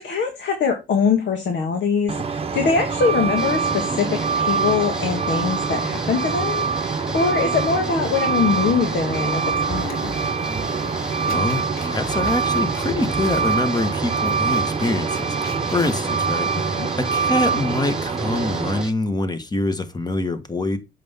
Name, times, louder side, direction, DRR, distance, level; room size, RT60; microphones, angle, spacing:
voice 1, 0.0-10.1 16.6-16.9, left 5 dB, 65° left, 1.8 m, -23 dB
Truck, 2.1-18.8, right 5 dB, 30° right, 1.0 m, -24 dB
sound 1, 3.4-18.9, right 1 dB, 5° right, 1.0 m, -34 dB
sound 2, 7.1-7.3 7.5-7.6 9.1-9.3 9.5-16.2, left 2 dB, 45° left, 2.9 m, -43 dB
voice 2, 11.2-20.8, left 2 dB, 20° left, 1.3 m, -25 dB
7.6 x 5.5 x 3.6 m
cardioid pair, 90°, 20 cm